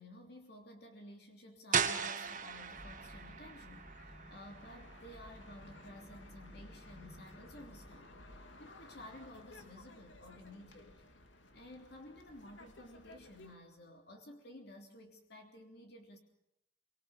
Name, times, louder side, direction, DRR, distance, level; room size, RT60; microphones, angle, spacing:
voice 1, 0.0-8.3 8.6-11.0 11.5-16.2, left 1 dB, 55° left, 3 dB, 3.2 m, -54 dB
sound 1, 1.7-7.4, right 7 dB, 40° right, 1.9 m, -39 dB
sound 2, 2.2-13.6, left 2 dB, 80° left, 2.8 m, -58 dB
sound 3, 2.7-8.4, equal, 20° left, 4.4 m, -56 dB
25.0 x 24.5 x 6.5 m, 0.77 s
head